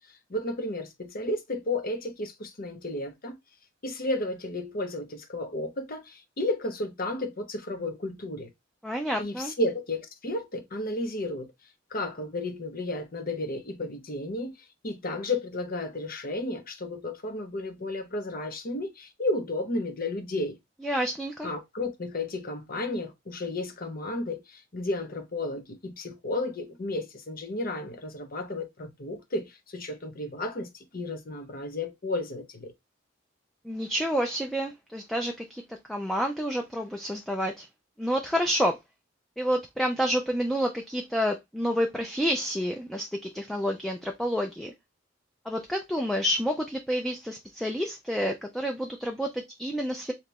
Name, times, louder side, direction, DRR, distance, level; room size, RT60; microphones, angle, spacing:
voice 1, 0.3-3.4 3.8-8.5 9.2-11.5 11.9-14.5 14.8-20.6 21.4-32.7, left 2 dB, 50° left, 0.8 m, -33 dB
voice 2, 8.8-9.5 20.8-21.5 33.6-37.7 38.0-38.8 39.4-44.7 45.5-50.1, equal, ahead, 0.4 m, -29 dB
3.4 x 2.9 x 4.0 m
head